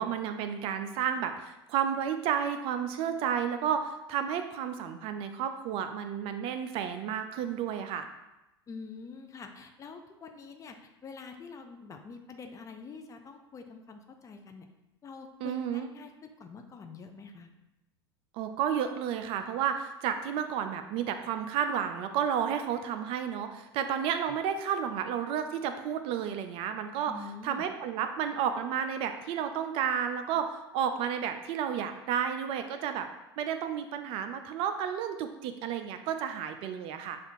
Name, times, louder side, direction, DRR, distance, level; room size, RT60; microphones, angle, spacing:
voice 1, 0.0-8.1 15.4-15.9 18.3-27.1 27.4-33.1 33.4-37.2, right 8 dB, 45° right, 8 dB, 0.3 m, -31 dB
voice 2, 8.7-14.7 15.0-17.5 27.1-27.6, left 4 dB, 25° left, 5 dB, 0.5 m, -46 dB
6.5 x 2.5 x 2.6 m, 0.96 s
figure-of-eight pair, 80°, 14 cm